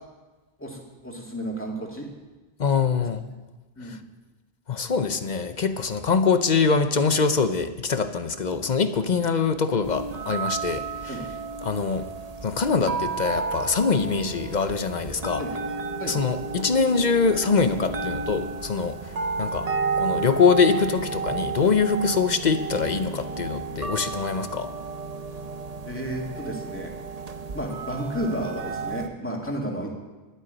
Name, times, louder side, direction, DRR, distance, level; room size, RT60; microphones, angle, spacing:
voice 1, 0.6-2.1 3.8-4.0 11.1-11.3 15.4-15.5 16.0-16.1 25.9-26.9 27.5-29.9, right 1 dB, 10° left, -1 dB, 2.4 m, -32 dB
voice 2, 2.6-3.2 3.8-4.0 4.7-11.2 11.6-12.1 12.4-15.4 16.0-19.0 19.4-19.7 20.0-24.7, left 5 dB, 50° left, 9 dB, 0.8 m, -23 dB
sound 1, 9.8-29.1, right 4 dB, 40° right, 0.8 m, -32 dB
12.0 x 7.9 x 9.9 m, 1.2 s
omnidirectional pair, 1.0 m